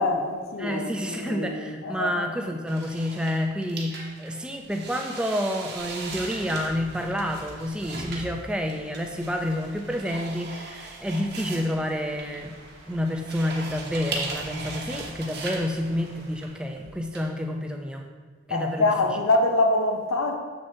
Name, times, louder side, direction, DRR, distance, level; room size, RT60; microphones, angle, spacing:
voice 1, 0.0-2.3 18.5-20.4, left 2 dB, 85° left, 0.7 m, -25 dB
voice 2, 0.6-12.5 12.9-18.1 18.5-18.9, equal, 5° right, 0.4 m, -29 dB
sound 1, 2.7-17.2, right 3 dB, 55° right, 1.0 m, -38 dB
sound 2, 5.7-16.5, right 1 dB, 85° right, 1.3 m, -47 dB
7.0 x 6.5 x 2.7 m
head